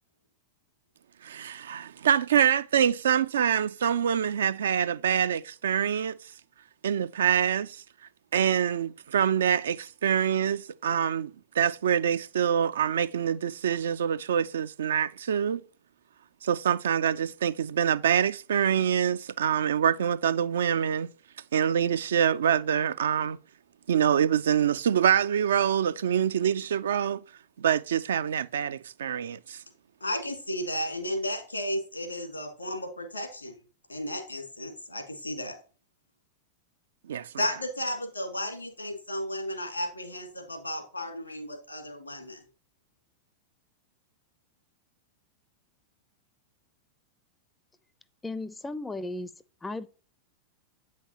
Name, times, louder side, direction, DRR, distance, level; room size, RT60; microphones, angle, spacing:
voice 1, 1.2-6.2 6.8-7.8 8.3-15.6 16.4-21.1 21.5-23.4 23.9-27.2 27.6-29.6 37.1-37.3, right 8 dB, 65° right, 0.3 m, -25 dB
voice 2, 30.0-33.5 33.9-35.6 37.4-42.4, left 1 dB, 85° left, 1.9 m, -34 dB
voice 3, 48.2-49.3 49.6-49.9, left 2 dB, 10° left, 0.4 m, -35 dB
8.3 x 5.7 x 2.9 m
figure-of-eight pair, 90°, 0 cm